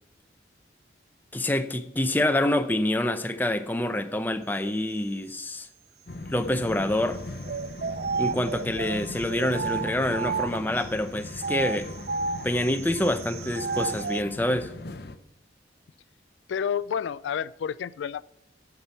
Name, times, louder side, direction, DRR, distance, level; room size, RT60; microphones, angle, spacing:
voice 1, 1.3-5.7 6.3-7.2 8.2-11.9 12.4-14.7, left 1 dB, 10° left, 0.6 m, -26 dB
sound 1, 6.1-15.2, left 2 dB, 55° left, 0.7 m, -39 dB
sound 2, 7.4-10.8 11.3-14.3, right 5 dB, 55° right, 0.3 m, -32 dB
voice 2, 16.5-18.2, left 8 dB, 85° left, 0.3 m, -30 dB
8.6 x 6.0 x 8.2 m
head